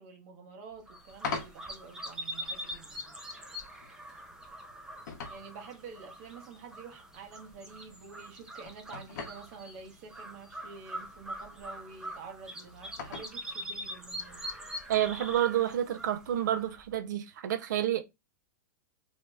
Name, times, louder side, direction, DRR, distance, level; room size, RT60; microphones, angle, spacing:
voice 1, 0.0-3.1 5.3-14.4, right 5 dB, 50° right, 1.0 m, -48 dB
sound 1, 0.7-17.0, left 5 dB, 70° left, 0.8 m, -47 dB
sound 2, 0.9-16.9, equal, 5° right, 0.5 m, -43 dB
voice 2, 14.9-18.0, right 11 dB, 75° right, 0.5 m, -29 dB
2.8 x 2.2 x 3.2 m
supercardioid pair, 145°, 10 cm